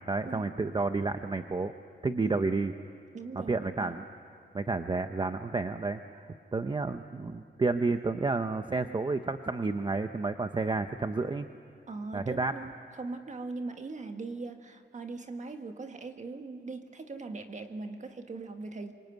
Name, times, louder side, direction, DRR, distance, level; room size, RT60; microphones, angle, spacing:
voice 1, 0.1-1.7 2.0-2.7 3.3-4.0 4.5-11.5 12.1-12.5, right 3 dB, 25° right, 8 dB, 0.7 m, -30 dB
voice 2, 3.1-3.9 11.9-18.9, right 3 dB, 40° right, 6 dB, 1.7 m, -40 dB
26.0 x 24.5 x 9.3 m, 2.6 s
wide cardioid pair, 165°, 19 cm